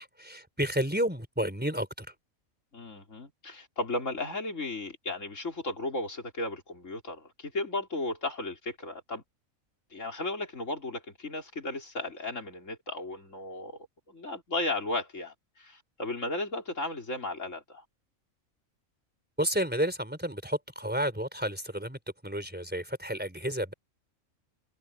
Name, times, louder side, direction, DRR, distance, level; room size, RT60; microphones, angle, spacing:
voice 1, 0.0-2.1 19.4-23.7, equal, 5° right, 4.2 m, -31 dB
voice 2, 2.7-9.2 9.9-17.8, left 2 dB, 60° left, 4.6 m, -35 dB
omnidirectional pair, 1.5 m